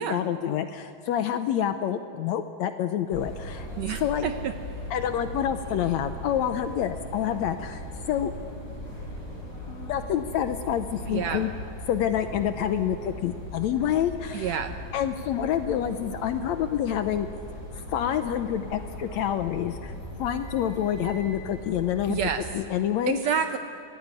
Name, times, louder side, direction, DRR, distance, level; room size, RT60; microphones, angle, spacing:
voice 1, 0.0-3.7 4.0-4.3 4.9-8.3 9.7-11.5 11.9-14.6 14.9-17.3 17.8-19.9 20.2-22.2 22.5-23.2, left 10 dB, 75° left, 9 dB, 1.8 m, -27 dB
sound 1, 3.1-22.5, left 1 dB, 25° left, 6.0 m, -39 dB
voice 2, 3.8-4.8 11.1-11.4 14.3-14.8 22.1-22.5 23.1-23.6, right 8 dB, 75° right, 8 dB, 1.6 m, -29 dB
24.0 x 17.0 x 9.6 m, 2.4 s
omnidirectional pair, 3.8 m